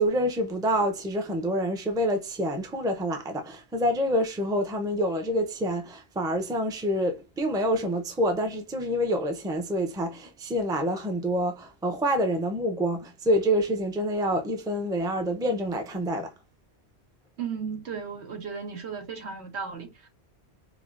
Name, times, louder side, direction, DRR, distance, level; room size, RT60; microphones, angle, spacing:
voice 1, 0.0-16.3, equal, 5° right, 0.3 m, -27 dB
voice 2, 17.4-20.1, right 6 dB, 90° right, 1.2 m, -35 dB
4.8 x 2.1 x 2.4 m
omnidirectional pair, 1.1 m